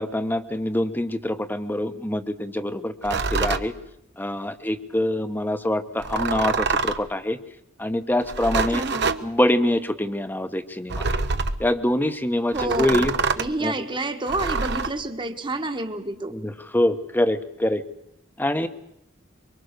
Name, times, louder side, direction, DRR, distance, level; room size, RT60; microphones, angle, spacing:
voice 1, 0.0-3.7 4.2-7.4 7.8-8.8 9.2-11.2 11.6-13.1 13.6-13.7 16.3-17.8 18.4-18.7, left 1 dB, 10° left, 10 dB, 1.0 m, -25 dB
sound 1, 3.0-3.7 6.0-7.1 8.2-9.2 10.9-11.6 12.5-13.5 14.3-14.9, right 4 dB, 60° right, 1.0 m, -25 dB
voice 2, 8.7-9.1 12.5-13.1 13.4-16.4, right 2 dB, 25° right, 6 dB, 1.4 m, -29 dB
24.0 x 23.5 x 6.7 m, 0.78 s
head